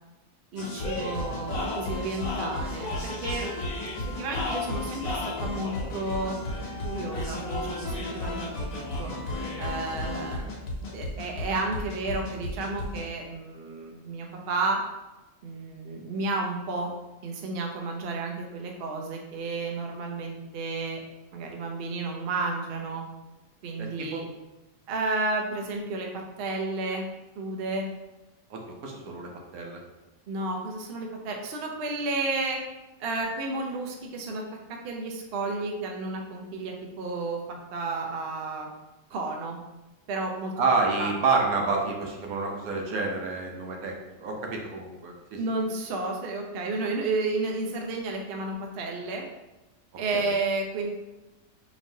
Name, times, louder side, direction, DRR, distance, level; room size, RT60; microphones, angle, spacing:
voice 1, 0.5-3.5 4.0-6.4 6.8-8.5 9.0-9.1 9.6-10.5 10.9-14.8 15.4-16.9 17.2-21.0 21.3-23.0 23.6-24.3 24.9-26.1 26.4-27.0 27.4-27.9 30.3-32.6 33.0-38.7 39.1-39.6 40.1-40.5 41.0-41.1 45.4-49.2 50.0-50.9, right 3 dB, 55° right, 1 dB, 0.7 m, -32 dB
sound 1, 0.6-13.1, left 2 dB, 80° left, 1.3 m, -33 dB
voice 2, 10.0-10.5 23.8-24.2 28.5-29.8 40.6-45.4 50.1-50.3, right 3 dB, 85° right, 0 dB, 1.2 m, -29 dB
4.8 x 3.0 x 2.7 m, 1.0 s
omnidirectional pair, 1.5 m